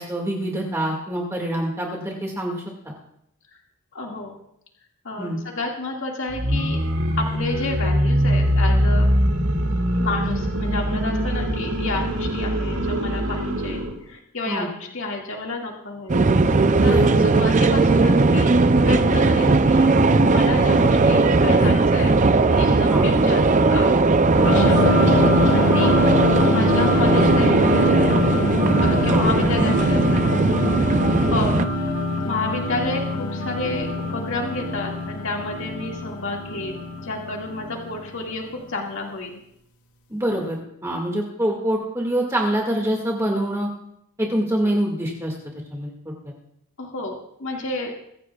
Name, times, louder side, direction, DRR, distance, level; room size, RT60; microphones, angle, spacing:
voice 1, 0.0-2.6 5.2-5.4 14.5-14.7 16.8-17.1 22.9-23.1 25.8-26.0 29.1-29.3 40.1-43.7 44.2-45.3 45.7-46.3, right 1 dB, 15° right, -1 dB, 2.0 m, -25 dB
voice 2, 3.9-4.4 5.0-6.8 7.2-9.1 10.0-16.5 16.8-18.6 18.8-19.9 20.3-22.2 22.5-24.0 24.3-26.0 26.5-28.2 28.8-30.7 31.3-31.6 32.2-39.4 46.8-47.9, left 2 dB, 60° left, -1 dB, 2.1 m, -30 dB
sound 1, 6.3-14.0, equal, 60° right, 2.3 m, -22 dB
sound 2, 16.1-31.7, right 3 dB, 35° right, 0.5 m, -18 dB
sound 3, 24.4-38.4, left 2 dB, 75° left, 1.8 m, -23 dB
23.0 x 16.0 x 2.4 m, 0.74 s
head